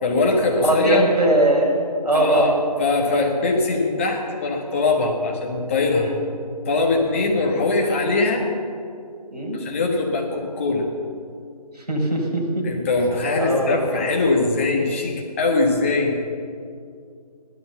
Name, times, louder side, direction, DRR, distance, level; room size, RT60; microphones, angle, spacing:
voice 1, 0.0-1.0 2.1-2.5 2.8-6.1 6.6-8.4 9.5-10.9 12.6-16.2, left 3 dB, 20° left, 0 dB, 1.4 m, -21 dB
voice 2, 0.6-1.8 2.0-2.5 6.0-6.2 7.4-7.5 9.3-9.6 11.7-12.6 13.4-13.7, right 1 dB, 80° right, -2 dB, 5.1 m, -20 dB
15.5 x 12.0 x 7.0 m, 2.4 s
figure-of-eight pair, 165°, 20 cm